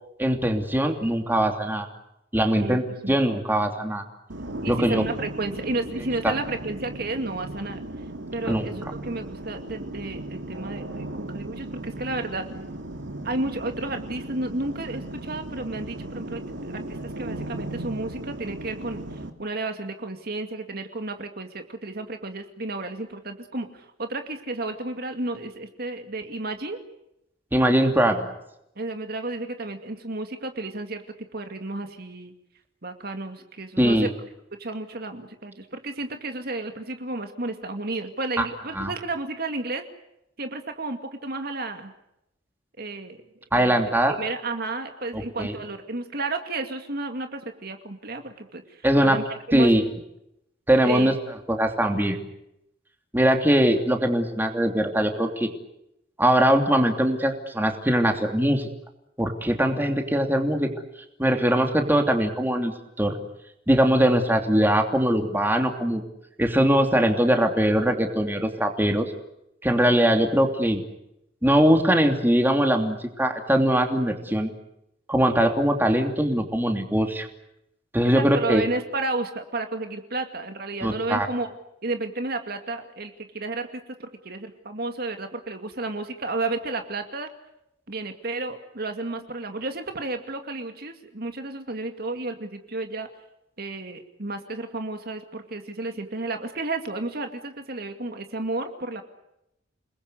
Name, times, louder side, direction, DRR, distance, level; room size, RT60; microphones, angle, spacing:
voice 1, 0.2-1.9 2.3-4.0 4.6-5.0 6.2-6.3 8.5-8.6 27.5-28.3 33.8-34.1 38.4-38.5 38.7-38.9 43.5-44.2 45.1-45.5 48.8-49.2 49.5-49.8 50.7-51.1 51.5-52.2 53.1-55.5 56.2-58.7 59.2-60.7 61.2-63.2 63.7-66.0 66.4-69.1 69.6-70.8 71.4-74.5 75.1-77.3 77.9-78.6 80.8-81.3, equal, 10° right, 4 dB, 2.9 m, -21 dB
voice 2, 3.0-3.4 4.6-7.8 8.3-12.5 13.2-26.8 28.8-31.0 31.3-32.3 32.8-34.1 34.6-39.8 40.4-41.9 42.8-43.2 43.5-43.8 44.2-49.7 50.8-51.1 69.9-70.0 78.1-81.5 81.8-87.3 87.9-93.1 93.6-99.0, right 2 dB, 55° right, 6 dB, 2.3 m, -32 dB
sound 1, 4.3-19.3, right 1 dB, 70° right, 2.7 m, -36 dB
29.0 x 21.0 x 8.2 m, 0.82 s
head